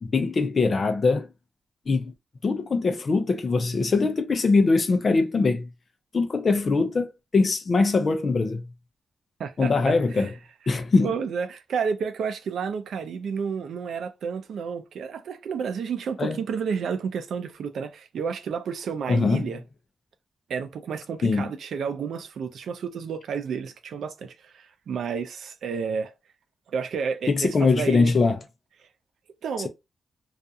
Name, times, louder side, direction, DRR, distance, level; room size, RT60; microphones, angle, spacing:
voice 1, 0.0-1.3 1.9-2.1 2.4-5.7 6.1-8.6 9.6-10.3 10.7-11.1 16.2-16.4 19.1-19.4 21.2-21.5 27.3-28.4, left 4 dB, 35° left, 0.4 m, -22 dB
voice 2, 9.4-10.3 11.0-19.6 20.5-26.1 26.7-28.2 29.4-29.7, right 6 dB, 90° right, 0.4 m, -31 dB
2.4 x 2.3 x 2.6 m
wide cardioid pair, 180°, 0 cm